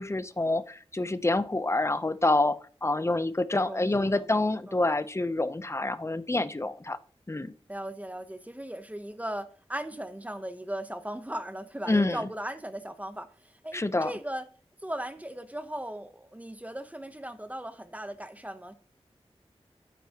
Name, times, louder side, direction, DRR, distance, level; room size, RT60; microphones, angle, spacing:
voice 1, 0.0-7.0 7.3-7.5 11.9-12.2 13.7-14.1, left 2 dB, 25° left, 0.6 m, -27 dB
voice 2, 3.6-4.3 4.7-4.8 7.7-14.5 14.8-18.8, right 1 dB, 15° right, 0.8 m, -38 dB
9.1 x 9.0 x 2.9 m
wide cardioid pair, 65°, 11 cm